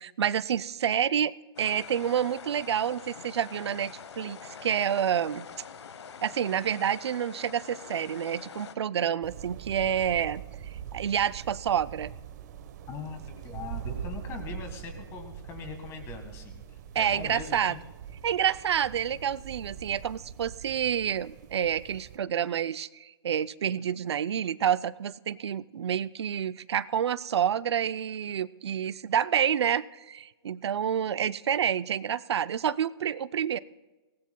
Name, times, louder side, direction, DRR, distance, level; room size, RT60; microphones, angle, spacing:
voice 1, 0.0-5.5 6.2-10.4 10.9-12.1 16.9-17.8 18.2-33.6, right 9 dB, 75° right, 17 dB, 0.5 m, -28 dB
sound 1, 1.6-8.8, left 6 dB, 80° left, 1.1 m, -45 dB
sound 2, 9.2-22.2, right 8 dB, 40° right, 1.0 m, -42 dB
voice 2, 12.9-17.8, left 5 dB, 20° left, 7 dB, 1.6 m, -41 dB
22.0 x 18.5 x 2.3 m, 1.2 s
hypercardioid pair, 155°, 14 cm